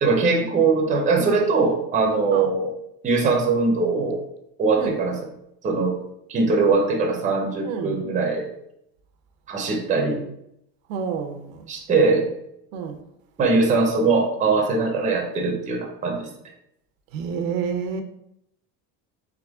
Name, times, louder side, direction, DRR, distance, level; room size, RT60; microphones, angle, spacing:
voice 1, 0.0-2.7 3.0-4.2 4.6-5.2 5.6-6.0 6.3-8.5 9.5-10.2 11.7-12.2 13.4-16.3, right 4 dB, 20° right, 1 dB, 0.6 m, -21 dB
voice 2, 7.6-8.0 10.9-11.7 12.7-13.0 17.1-18.0, right 6 dB, 85° right, 6 dB, 0.7 m, -29 dB
3.6 x 3.4 x 3.5 m, 0.78 s
cardioid pair, 160°, 40 cm